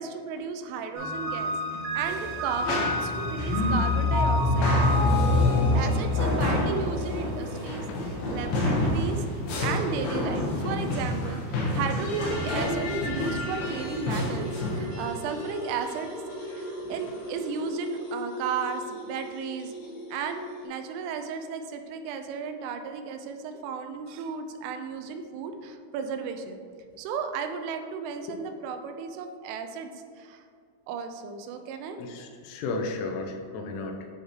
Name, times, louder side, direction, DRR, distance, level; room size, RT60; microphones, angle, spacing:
voice 1, 0.0-1.5 1.9-4.7 5.7-7.8 8.3-9.2 9.6-16.1 16.6-19.7 20.1-26.6 27.0-29.9 30.2-30.4 30.9-32.0, right 5 dB, 85° right, 7 dB, 3.1 m, -34 dB
sound 1, 0.9-8.2, left 2 dB, 60° right, 2.3 m, -26 dB
sound 2, 2.0-14.9, left 1 dB, 70° left, 2.3 m, -30 dB
voice 2, 3.5-3.8 7.9-8.1 16.8-17.0 32.0-34.1, left 2 dB, 85° left, 3 dB, 3.2 m, -33 dB
sound 3, 11.8-20.7, equal, 55° left, 2.0 m, -38 dB
9.6 x 3.2 x 4.3 m, 2.2 s
omnidirectional pair, 5.6 m